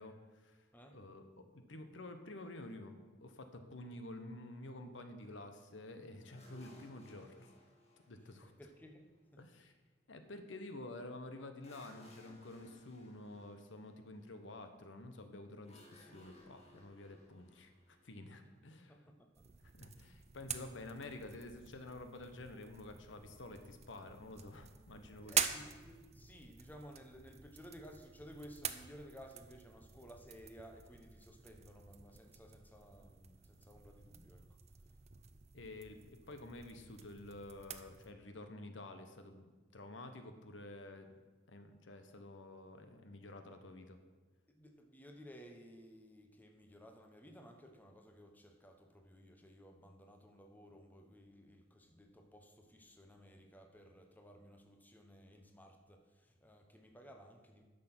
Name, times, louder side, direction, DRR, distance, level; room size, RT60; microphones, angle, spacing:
voice 1, 0.0-7.5 8.1-8.5 9.4-9.7 10.1-19.0 19.6-25.5 35.5-41.2 41.5-44.0, left 2 dB, 70° left, 7 dB, 0.9 m, -50 dB
sound 1, 6.3-9.3 11.6-14.4 15.6-18.7, left 1 dB, 35° left, 2.0 m, -63 dB
voice 2, 8.6-9.4 18.9-19.4 25.2-34.4 44.5-57.6, equal, 10° left, 3 dB, 1.0 m, -57 dB
sound 2, 19.4-38.1, right 8 dB, 35° right, 0.5 m, -46 dB
10.5 x 6.6 x 5.9 m, 1.4 s
head